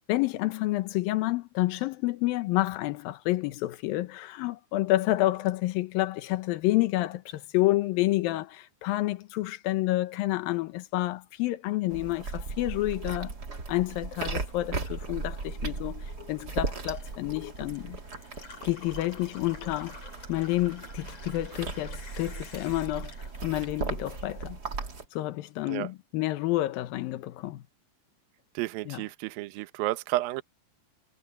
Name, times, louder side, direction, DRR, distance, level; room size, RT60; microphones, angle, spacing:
voice 1, 0.1-13.3 13.7-18.0 18.6-20.0 20.3-24.6 25.1-27.6 28.9-29.0, left 17 dB, 85° left, 2.0 m, -29 dB
sound 1, 11.9-25.0, right 4 dB, 35° right, 1.6 m, -37 dB
Gurgling / Water tap faucet / Sink (filling or washing), 14.8-24.3 24.6-25.5, left 5 dB, 35° left, 5.8 m, -50 dB
voice 2, 28.6-30.4, right 17 dB, 75° right, 2.2 m, -31 dB
omnidirectional pair, 5.4 m